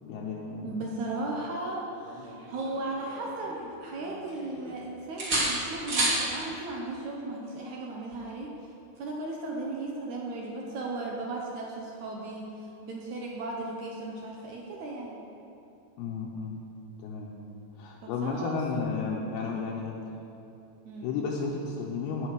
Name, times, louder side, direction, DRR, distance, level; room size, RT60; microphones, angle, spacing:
voice 1, 0.0-0.7 16.0-16.6 17.0-17.3 17.8-20.0 21.0-22.3, left 5 dB, 75° left, -4 dB, 2.8 m, -33 dB
voice 2, 0.6-8.5 9.0-15.2 18.0-19.2 20.8-21.1, right 2 dB, 80° right, -2 dB, 1.7 m, -36 dB
sound 1, 2.0-3.6 4.0-4.8 5.2-6.2 8.1-8.3, right 1 dB, 30° right, 2.4 m, -31 dB
13.0 x 5.3 x 9.1 m, 2.8 s
omnidirectional pair, 4.9 m